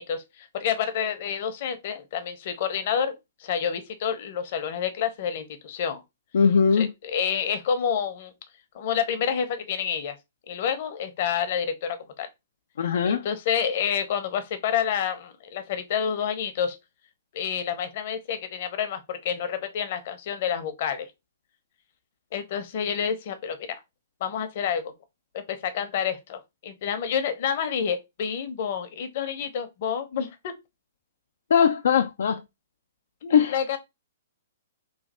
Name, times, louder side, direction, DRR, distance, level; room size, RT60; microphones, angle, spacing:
voice 1, 0.0-6.0 6.7-8.3 8.7-10.2 10.5-12.3 13.0-16.8 17.3-21.1 22.3-23.8 24.2-24.9 25.3-30.5 33.2-33.8, left 8 dB, 50° left, 0.8 m, -29 dB
voice 2, 6.3-6.9 12.8-13.3 31.5-32.4 33.3-33.6, left 6 dB, 70° left, 0.3 m, -20 dB
3.1 x 2.3 x 4.2 m
hypercardioid pair, 125°, 0 cm